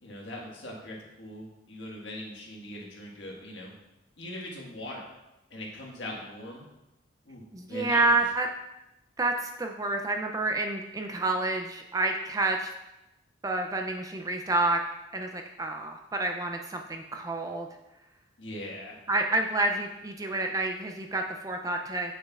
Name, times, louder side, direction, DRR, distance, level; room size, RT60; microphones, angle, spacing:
voice 1, 0.0-3.7 4.2-5.1 5.5-6.6 7.2-8.1 18.4-19.0, left 1 dB, 60° left, -3 dB, 1.5 m, -40 dB
voice 2, 7.5-8.5 9.2-12.7 13.4-14.8 15.1-17.7 19.1-22.1, right 2 dB, 15° right, 3 dB, 0.3 m, -29 dB
7.5 x 6.3 x 2.4 m, 0.94 s
head